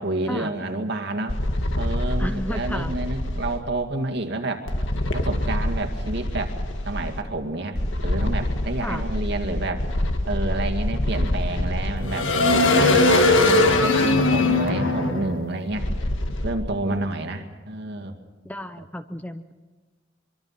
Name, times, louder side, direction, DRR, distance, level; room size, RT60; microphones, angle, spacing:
voice 1, 0.0-1.4 1.8-4.7 5.1-6.6 6.8-9.9 10.2-15.9 16.4-18.1, right 2 dB, 60° right, 5 dB, 2.2 m, -29 dB
sound 1, 1.3-3.6 4.7-7.2 7.7-16.5, left 2 dB, 70° left, 1.9 m, -23 dB
voice 2, 2.2-2.9 8.8-9.0 16.9-17.5 18.4-19.5, left 1 dB, 10° left, 10 dB, 0.6 m, -33 dB
24.0 x 24.0 x 5.9 m, 1.3 s
head